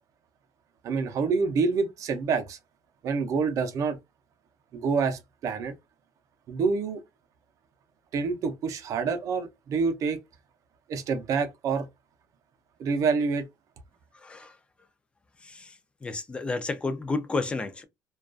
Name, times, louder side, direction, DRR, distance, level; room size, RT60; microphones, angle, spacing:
voice 1, 0.8-2.6 3.0-4.0 4.7-5.7 6.5-7.0 8.1-10.2 10.9-11.9 12.8-13.4, right 5 dB, 50° right, 0.5 m, -27 dB
voice 2, 14.1-14.5 15.4-15.8 16.0-17.8, left 3 dB, 15° left, 0.3 m, -31 dB
2.3 x 2.2 x 2.5 m
cardioid pair, 160°, 7 cm